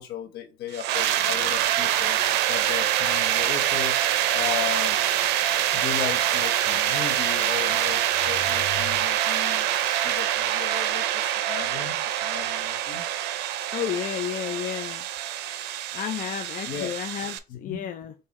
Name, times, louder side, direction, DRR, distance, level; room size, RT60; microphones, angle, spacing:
voice 1, 0.0-2.2 2.5-5.0 5.7-13.0 16.7-17.0 17.5-17.9, left 9 dB, 75° left, 1.3 m, -35 dB
sound 1, 0.7-17.4, right 11 dB, 90° right, 0.5 m, -25 dB
voice 2, 13.7-15.0 15.9-18.1, left 10 dB, 55° left, 0.5 m, -31 dB
5.5 x 2.8 x 3.0 m
cardioid pair, 110°, 17 cm